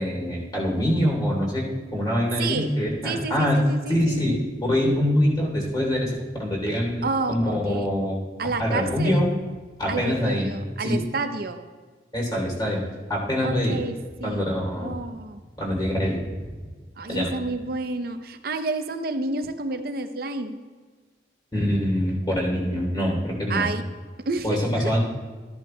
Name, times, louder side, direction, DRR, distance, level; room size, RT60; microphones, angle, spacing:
voice 1, 0.0-3.6 3.9-4.3 4.6-6.1 6.4-8.2 8.6-9.3 9.8-10.5 10.8-11.0 12.1-12.8 13.1-13.8 14.2-15.0 15.6-16.2 17.1-17.3 21.5-23.7 24.4-25.0, equal, 25° left, -2 dB, 3.0 m, -24 dB
voice 2, 0.8-1.1 2.4-2.7 3.0-4.4 7.0-7.9 8.4-9.2 9.9-11.6 13.4-14.5 14.8-15.4 17.0-20.6 23.5-23.8 24.3-24.9, right 3 dB, 55° right, 8 dB, 0.6 m, -30 dB
14.0 x 10.5 x 2.2 m, 1.4 s
head